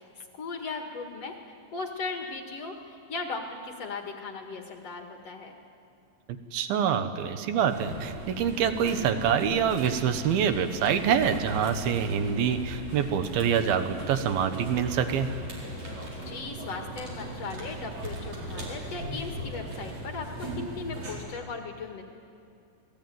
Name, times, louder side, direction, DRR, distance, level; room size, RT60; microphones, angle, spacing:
voice 1, 0.3-1.4 1.7-5.6 15.9-22.0, left 4 dB, 60° left, 3 dB, 1.7 m, -37 dB
voice 2, 6.5-15.3, right 8 dB, 70° right, 9 dB, 2.5 m, -26 dB
sound 1, 7.7-21.2, right 1 dB, 35° right, 6.1 m, -38 dB
29.0 x 20.5 x 9.4 m, 2.4 s
omnidirectional pair, 5.7 m